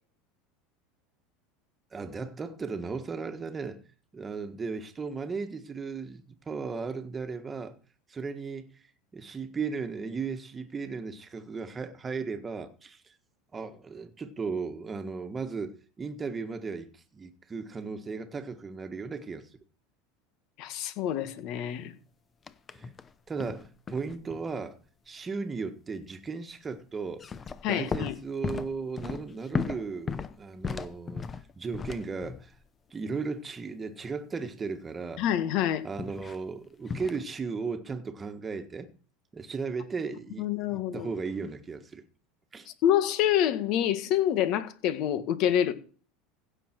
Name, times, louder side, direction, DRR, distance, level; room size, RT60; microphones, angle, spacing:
voice 1, 1.9-3.8 4.1-7.8 8.1-8.7 9.1-13.1 13.5-19.5 22.7-22.9 23.3-24.8 25.1-27.3 27.7-31.3 31.5-32.5 32.9-35.2 35.8-38.9 39.3-42.0 42.5-42.7, right 4 dB, 20° right, 1.6 m, -36 dB
voice 2, 20.6-21.9 27.6-28.1 35.2-35.8 40.4-41.1 42.8-45.7, left 10 dB, 55° left, 1.8 m, -27 dB
sound 1, 22.5-23.1 23.4-24.6 27.1-32.6 36.0-36.4 36.9-37.2, left 5 dB, 25° left, 0.9 m, -36 dB
16.0 x 7.2 x 4.6 m
supercardioid pair, 120°, 0 cm